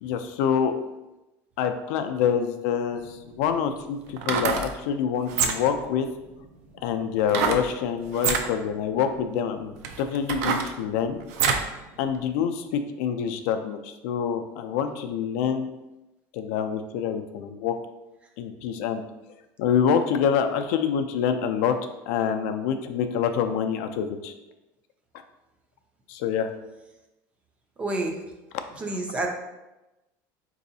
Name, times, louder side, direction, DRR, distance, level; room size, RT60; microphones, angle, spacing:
voice 1, 0.0-0.7 1.6-6.1 6.8-11.2 12.0-15.7 16.3-17.7 18.4-19.0 19.6-21.7 22.1-24.3 26.1-26.5 28.5-28.6, left 7 dB, 75° left, 7 dB, 0.3 m, -26 dB
sound 1, 2.9-3.0 4.1-4.7 5.3-5.8 7.3-7.7 8.1-8.5 9.2-9.3 9.8-11.7 12.2-12.3, right 6 dB, 90° right, 0.4 m, -26 dB
voice 2, 27.8-28.1 28.7-29.3, right 2 dB, 15° right, 2 dB, 0.3 m, -28 dB
4.0 x 2.7 x 2.6 m, 1.0 s
cardioid pair, 175°, 8 cm